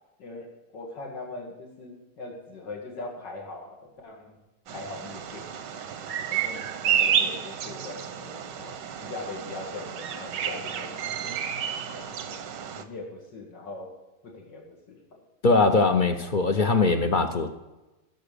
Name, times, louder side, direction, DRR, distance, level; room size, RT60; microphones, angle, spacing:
voice 1, 0.2-4.4 4.7-5.8 6.3-11.4 11.9-12.4 12.7-13.9 14.2-15.2 15.6-15.8 16.6-16.7, left 2 dB, 90° left, 0 dB, 2.7 m, -41 dB
Bird vocalization bird call bird song, 4.7-12.8, right 8 dB, 90° right, 1.6 m, -30 dB
voice 2, 15.4-17.5, left 3 dB, 50° left, 8 dB, 0.6 m, -21 dB
15.5 x 7.0 x 6.8 m, 1.0 s
omnidirectional pair, 1.9 m